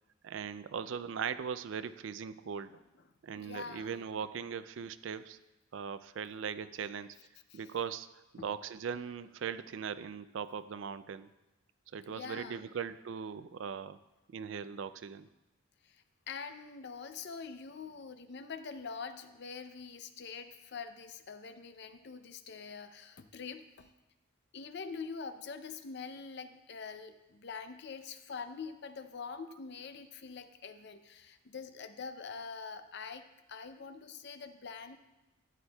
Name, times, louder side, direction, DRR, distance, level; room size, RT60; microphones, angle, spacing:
voice 1, 0.2-2.8 3.2-5.4 5.7-7.2 7.5-11.3 11.9-14.0 14.3-15.3, right 7 dB, 65° right, 14 dB, 0.4 m, -39 dB
voice 2, 3.4-4.0 7.5-7.7 8.4-8.5 12.1-12.7 15.8-23.9 24.5-35.0, left 5 dB, 55° left, 9 dB, 0.5 m, -45 dB
12.5 x 9.6 x 2.3 m, 1.0 s
head